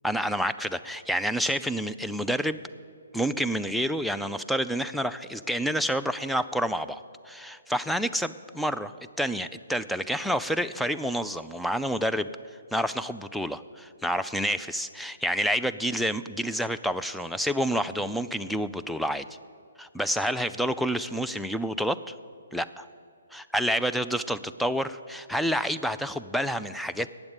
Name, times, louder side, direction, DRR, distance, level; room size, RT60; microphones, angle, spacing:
voice 1, 0.0-2.6 3.1-12.3 12.7-19.3 19.8-22.1 22.5-22.9 23.3-27.1, equal, ahead, 10 dB, 0.3 m, -28 dB
9.5 x 7.9 x 8.9 m, 2.3 s
hypercardioid pair, 145°, 0 cm